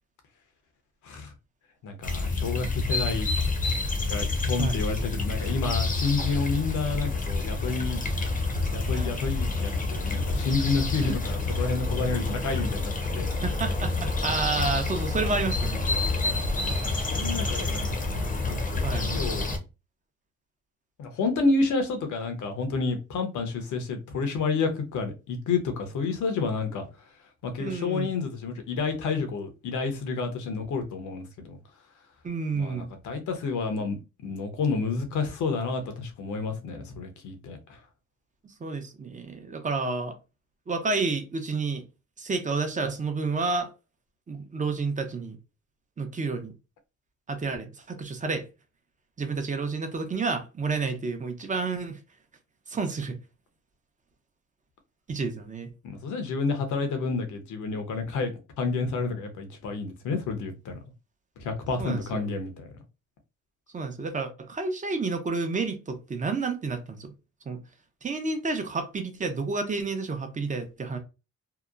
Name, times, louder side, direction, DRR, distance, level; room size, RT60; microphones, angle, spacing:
voice 1, 1.8-3.3 4.1-8.0 8.7-13.3 17.1-18.1 18.5-19.5 21.0-26.9 27.4-31.6 32.5-34.0 34.2-37.8 55.8-60.7 61.4-62.7, left 4 dB, 75° left, 0.8 m, -30 dB
sound 1, 2.0-19.6, left 3 dB, 25° left, 0.7 m, -28 dB
voice 2, 13.4-15.8 18.8-19.1 27.6-28.1 32.2-32.9 38.4-40.2 40.7-41.8 42.2-43.7 44.3-45.4 46.0-46.5 47.3-48.4 49.2-52.0 52.7-53.2 55.1-55.7 61.8-62.3 63.7-67.1 67.5-67.6 68.0-71.0, right 4 dB, 25° right, 0.7 m, -30 dB
2.8 x 2.1 x 2.4 m
cardioid pair, 90°, 30 cm